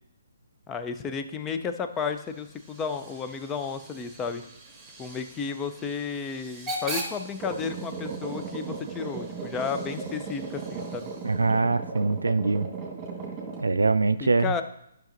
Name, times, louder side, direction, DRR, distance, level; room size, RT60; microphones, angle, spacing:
voice 1, 0.7-4.4 5.0-11.1 14.2-14.6, left 6 dB, 15° left, 8 dB, 0.5 m, -32 dB
Hiss / Train / Alarm, 1.9-11.6, right 1 dB, 5° right, 1.8 m, -42 dB
sound 1, 7.4-13.6, right 4 dB, 20° right, 1.6 m, -36 dB
voice 2, 11.2-12.7 13.6-14.5, right 3 dB, 85° right, 10 dB, 0.3 m, -23 dB
11.5 x 5.8 x 2.6 m, 0.78 s
figure-of-eight pair, 140°, 0 cm